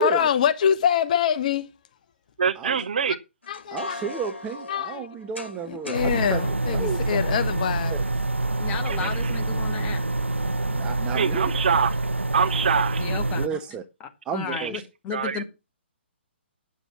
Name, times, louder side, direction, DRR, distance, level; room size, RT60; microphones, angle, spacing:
voice 1, 0.0-1.7 3.5-4.0 4.7-5.1 5.7-8.0, left 8 dB, 40° left, 0.9 m, -24 dB
voice 2, 2.4-3.2 8.9-9.1 11.1-12.0 12.3-13.0 14.5-14.7 15.1-15.4, right 6 dB, 50° right, 1.0 m, -24 dB
sound 1, 3.4-6.2, left 2 dB, 75° left, 2.1 m, -38 dB
voice 3, 3.7-6.4 6.7-7.3 7.9-8.0 9.0-9.1 10.7-11.5 13.4-13.8 14.3-14.8, right 6 dB, 15° right, 0.8 m, -31 dB
sound 2, 5.9-13.5, right 2 dB, 85° right, 0.5 m, -26 dB
voice 4, 8.6-10.0 13.0-13.5 14.0-15.4, left 7 dB, 20° left, 1.8 m, -34 dB
10.0 x 7.1 x 5.9 m
figure-of-eight pair, 130°, 6 cm